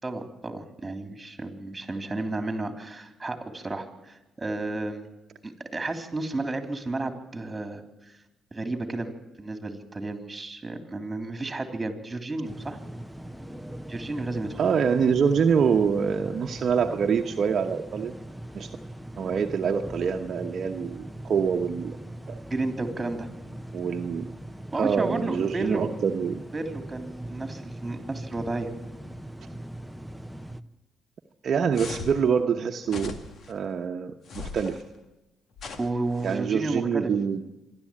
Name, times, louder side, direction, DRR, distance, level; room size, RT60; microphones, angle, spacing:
voice 1, 0.0-5.1 5.4-8.1 8.5-12.8 13.9-14.6 22.5-23.3 24.7-25.9 26.5-28.7 35.8-37.1, right 2 dB, 20° right, 6 dB, 3.4 m, -32 dB
sound 1, 12.4-30.6, right 1 dB, ahead, 0.9 m, -41 dB
voice 2, 14.6-18.2 18.5-18.7 19.2-22.0 22.3-22.4 23.7-24.3 24.7-26.4 31.4-33.1 33.5-34.8 36.2-37.4, right 6 dB, 55° right, 3 dB, 1.1 m, -25 dB
sound 2, 31.7-32.2 32.9-33.5 34.3-34.8 35.6-36.4, left 4 dB, 60° left, 2.1 m, -39 dB
26.0 x 12.0 x 8.8 m, 1.0 s
cardioid pair, 90°, 0 cm